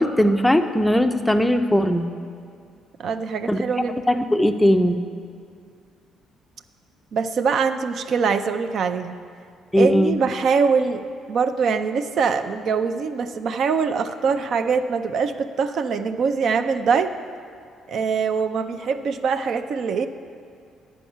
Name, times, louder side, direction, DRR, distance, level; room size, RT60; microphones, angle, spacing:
voice 1, 0.0-2.1 3.5-3.6 4.1-5.0 9.7-10.2, equal, 5° left, 7 dB, 0.4 m, -19 dB
voice 2, 3.0-4.0 7.1-9.2 9.8-11.0 11.3-17.1 17.9-20.1, right 5 dB, 60° right, 9 dB, 0.4 m, -23 dB
10.5 x 4.6 x 7.1 m, 2.3 s
cardioid pair, 115°, 0 cm